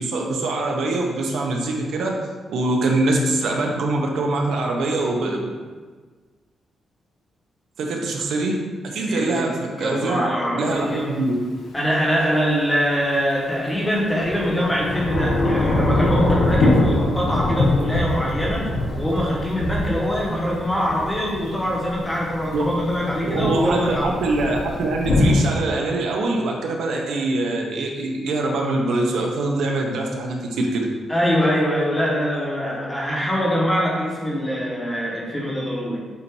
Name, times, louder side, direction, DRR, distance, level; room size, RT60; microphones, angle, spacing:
voice 1, 0.0-2.2 2.5-5.5 7.8-11.3 22.5-22.6 23.2-30.9, right 2 dB, 75° right, 0 dB, 0.9 m, -23 dB
voice 2, 9.1-9.5 9.8-11.2 11.7-24.2 31.1-36.0, equal, 10° left, -4 dB, 1.2 m, -23 dB
Thunder / Rain, 10.7-10.8 13.7-25.4, left 2 dB, 90° left, 1.3 m, -23 dB
8.3 x 2.8 x 4.6 m, 1.4 s
wide cardioid pair, 160°, 0 cm